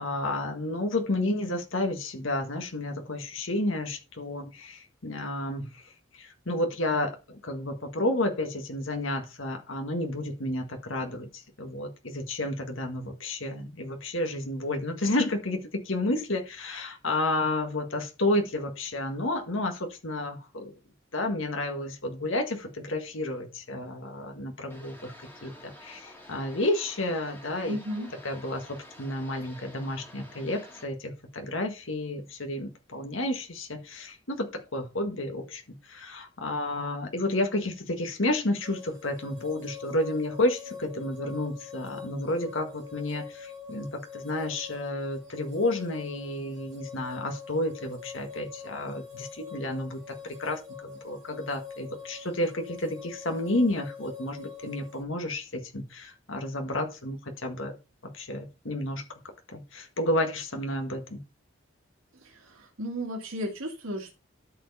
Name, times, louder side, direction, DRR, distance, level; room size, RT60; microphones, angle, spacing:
voice 1, 0.0-20.7 21.1-25.1 25.4-27.8 28.2-57.7 58.1-59.0 59.5-61.2, left 1 dB, 75° left, 5 dB, 1.6 m, -31 dB
sound 1, 24.7-30.8, left 1 dB, 10° left, 2.3 m, -50 dB
voice 2, 27.7-28.1 62.2-64.1, equal, 85° right, 0 dB, 2.3 m, -34 dB
sound 2, 38.6-55.0, left 6 dB, 20° right, 2.6 m, -44 dB
12.5 x 4.7 x 4.1 m, 0.28 s
head